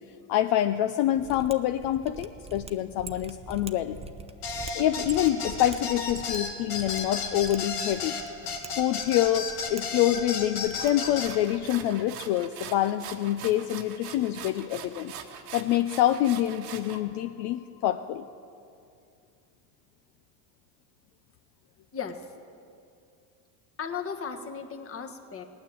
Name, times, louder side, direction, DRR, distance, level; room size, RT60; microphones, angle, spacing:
voice 1, 0.3-4.0 4.7-8.2 8.8-15.1 15.5-18.3, left 12 dB, 60° left, 8 dB, 0.7 m, -26 dB
Mechanisms, 1.1-11.6, right 3 dB, 15° right, 0.7 m, -45 dB
sound 1, 4.4-11.3, left 5 dB, 85° left, 2.3 m, -33 dB
sound 2, 10.7-17.0, right 8 dB, 70° right, 1.4 m, -43 dB
voice 2, 21.9-22.3 23.8-25.4, left 6 dB, 30° left, 6 dB, 1.5 m, -36 dB
18.0 x 9.5 x 7.7 m, 2.5 s
supercardioid pair, 100°, 45 cm